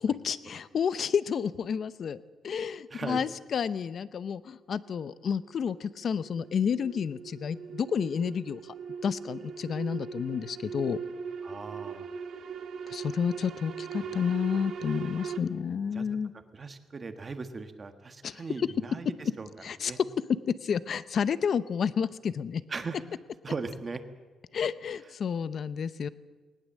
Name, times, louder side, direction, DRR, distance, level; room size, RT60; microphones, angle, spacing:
voice 1, 0.0-8.7 9.0-11.0 12.9-16.3 18.2-18.7 19.6-19.9 20.5-22.6 24.5-26.1, left 7 dB, 45° left, 16 dB, 0.7 m, -30 dB
sound 1, 4.9-15.4, right 6 dB, 60° right, 1.7 m, -40 dB
voice 2, 11.4-12.1 15.9-16.1 16.5-19.5 19.8-20.0 22.7-23.0 23.4-24.0, right 4 dB, 25° right, 8 dB, 1.5 m, -38 dB
19.5 x 19.0 x 7.5 m, 1.3 s
cardioid pair, 155°, 0 cm